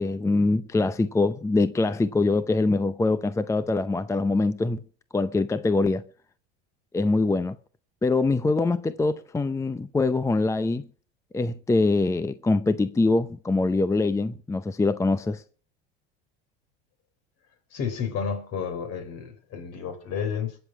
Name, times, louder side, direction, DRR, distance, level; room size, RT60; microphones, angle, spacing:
voice 1, 0.0-4.8 5.1-6.0 6.9-7.6 8.0-10.9 11.3-15.4, left 3 dB, 10° left, 0.6 m, -24 dB
voice 2, 17.7-20.6, left 7 dB, 55° left, 4.0 m, -31 dB
21.5 x 7.3 x 6.2 m
hypercardioid pair, 95°, 31 cm